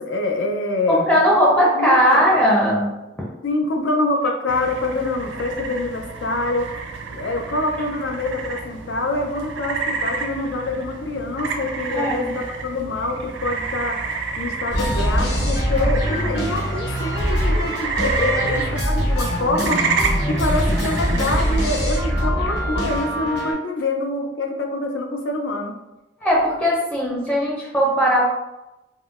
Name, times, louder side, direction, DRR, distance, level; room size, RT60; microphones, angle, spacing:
voice 1, 0.0-1.1 1.6-2.2 3.4-6.7 7.1-14.0 14.4-19.8 20.3-25.7, left 2 dB, 90° left, 3 dB, 0.5 m, -25 dB
voice 2, 0.9-3.0 11.9-12.2 20.7-20.8 26.2-28.2, equal, 5° left, -4 dB, 0.5 m, -18 dB
sound 1, 4.5-22.1, right 4 dB, 75° right, 0.4 m, -30 dB
sound 2, 14.7-23.5, equal, 60° left, 0.9 m, -23 dB
3.6 x 2.1 x 2.4 m, 0.98 s
head